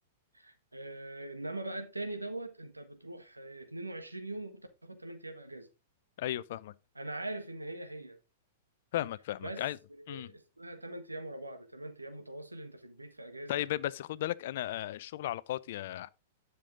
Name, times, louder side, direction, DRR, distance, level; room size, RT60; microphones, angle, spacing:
voice 1, 0.3-5.7 6.9-8.2 9.4-9.6 10.0-13.6, right 2 dB, 90° right, 1.5 m, -42 dB
voice 2, 6.2-6.7 8.9-9.8 10.1-10.3 13.5-16.1, left 13 dB, 55° left, 0.5 m, -35 dB
10.5 x 6.7 x 3.7 m
figure-of-eight pair, 105°, 0 cm